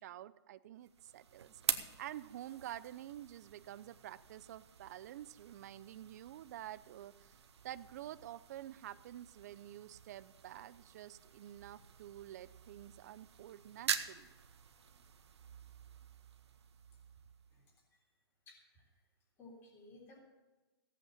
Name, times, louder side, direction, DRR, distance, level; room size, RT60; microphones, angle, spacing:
voice 1, 0.0-7.4 7.6-14.3, right 12 dB, 40° right, 15 dB, 0.5 m, -49 dB
sound 1, 0.8-17.8, right 7 dB, 90° right, 1.2 m, -46 dB
voice 2, 18.5-18.9 19.4-20.2, left 2 dB, 15° left, -2 dB, 3.6 m, -57 dB
16.0 x 8.3 x 6.9 m, 1.1 s
hypercardioid pair, 160°, 14 cm